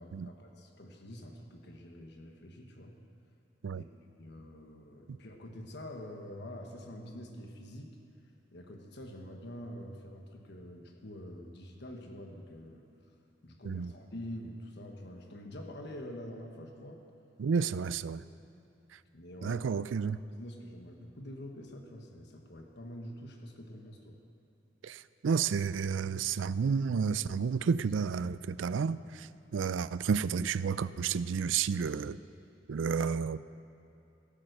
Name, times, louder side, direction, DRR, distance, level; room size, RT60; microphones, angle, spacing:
voice 1, 0.0-3.0 3.7-3.9 4.2-8.0 8.5-12.9 13.4-17.0 19.1-19.8 20.1-24.2, left 1 dB, 60° left, 3 dB, 1.3 m, -46 dB
voice 2, 17.4-18.2 19.4-20.2 24.8-29.3 29.5-32.2 32.7-33.4, right 6 dB, 85° right, 17 dB, 0.4 m, -31 dB
16.0 x 8.9 x 6.6 m, 2.8 s
head